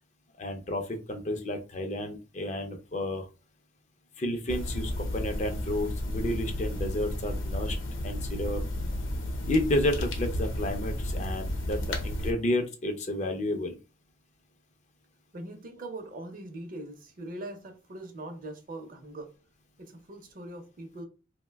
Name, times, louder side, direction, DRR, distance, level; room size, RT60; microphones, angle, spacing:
voice 1, 0.4-3.3 4.2-7.8 8.0-8.6 9.5-13.8, left 1 dB, 35° left, 0.4 m, -31 dB
sound 1, 4.5-12.3, left 1 dB, 80° left, 0.7 m, -32 dB
voice 2, 15.3-19.4 19.8-21.0, right 2 dB, 45° right, 0.6 m, -41 dB
2.6 x 2.1 x 3.3 m
head